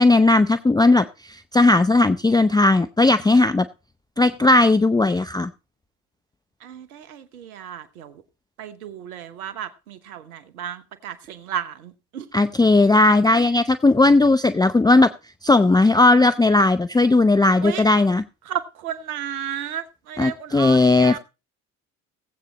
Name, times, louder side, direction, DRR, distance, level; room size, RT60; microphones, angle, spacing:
voice 1, 0.0-3.7 4.2-5.5 12.3-15.1 15.4-18.2 20.2-21.2, left 2 dB, 10° left, 0.6 m, -17 dB
voice 2, 6.6-8.1 8.6-12.3 17.6-17.8 18.5-21.2, right 9 dB, 85° right, 1.2 m, -33 dB
17.5 x 8.4 x 4.1 m
hypercardioid pair, 55°, 43 cm